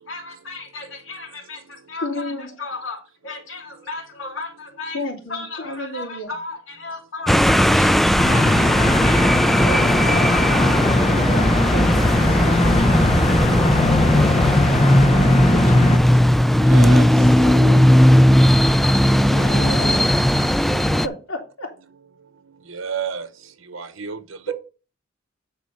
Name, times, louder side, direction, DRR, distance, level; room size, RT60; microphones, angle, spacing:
voice 1, 0.0-5.0 5.3-8.0 8.3-9.3 9.6-10.9, left 3 dB, 70° left, 2.8 m, -34 dB
voice 2, 2.0-2.6 4.9-6.3 9.6-13.9 15.2-16.2 17.4-17.8 19.3-20.0 21.0-21.7 24.5-24.6, equal, 85° left, 3.2 m, -32 dB
sound 1, 7.3-21.1, equal, ahead, 0.3 m, -16 dB
sound 2, 8.2-16.0, left 2 dB, 30° left, 0.9 m, -20 dB
voice 3, 16.7-17.1 22.7-23.3 23.7-24.2 24.5-24.6, right 5 dB, 80° right, 1.0 m, -29 dB
9.5 x 4.3 x 5.6 m
head